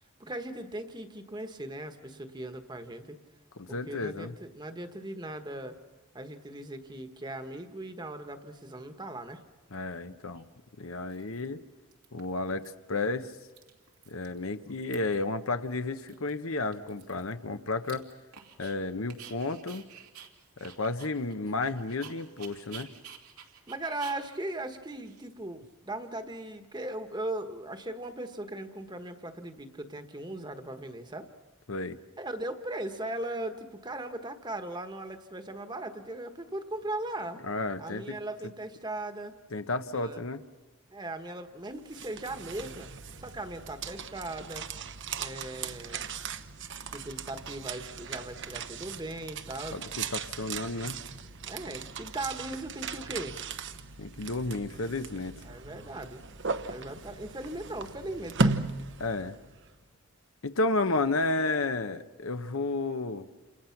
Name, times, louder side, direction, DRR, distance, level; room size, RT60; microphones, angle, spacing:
voice 1, 0.2-3.2 3.9-5.7 6.1-9.4 23.7-31.3 32.2-37.4 37.8-39.3 39.9-40.2 40.9-42.9 43.2-44.6 45.2-46.0 46.9-49.8 51.5-53.4 55.4-56.2 56.7-58.5, right 1 dB, 20° right, 7 dB, 1.3 m, -38 dB
voice 2, 3.6-4.3 9.7-10.4 10.8-11.6 12.1-13.3 14.1-18.1 18.6-19.8 20.6-22.9 31.7-32.0 37.4-38.2 39.5-40.4 49.7-51.0 54.0-55.4 59.0-59.3 60.4-63.3, left 3 dB, 65° left, 9 dB, 1.0 m, -32 dB
Dog, 10.4-10.5 11.1-11.6 11.9-12.7 13.0-13.1 13.3-14.4 14.6-15.3 15.7-15.8 16.1-18.8 19.1-25.7, right 8 dB, 85° right, 2.7 m, -51 dB
sound 1, 41.7-59.7, right 4 dB, 55° right, 1.0 m, -37 dB
29.5 x 27.5 x 5.9 m, 1.3 s
head